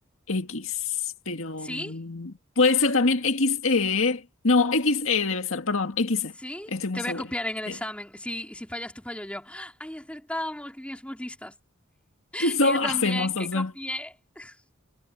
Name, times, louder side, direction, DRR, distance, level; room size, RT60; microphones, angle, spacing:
voice 1, 0.3-1.0 1.3-6.3 6.7-7.2 12.4-13.7, left 3 dB, 70° left, 2.1 m, -24 dB
voice 2, 1.6-2.0 6.4-11.6 12.3-14.6, left 1 dB, 5° left, 3.7 m, -35 dB
head